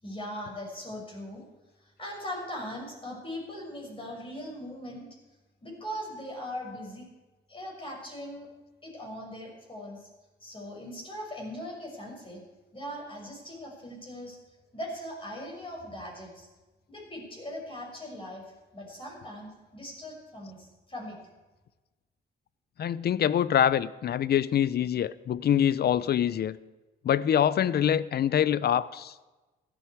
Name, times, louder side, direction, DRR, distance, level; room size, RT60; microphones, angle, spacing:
voice 1, 0.0-1.4 1.8-5.1 5.6-7.1 7.5-8.5 8.8-10.1 10.4-12.4 12.7-14.4 14.7-16.5 16.9-21.2, equal, 25° left, -1 dB, 6.3 m, -40 dB
voice 2, 22.8-26.6 27.0-29.1, left 9 dB, 55° left, 18 dB, 0.7 m, -25 dB
16.5 x 13.0 x 4.7 m, 1.1 s
cardioid pair, 90°, 20 cm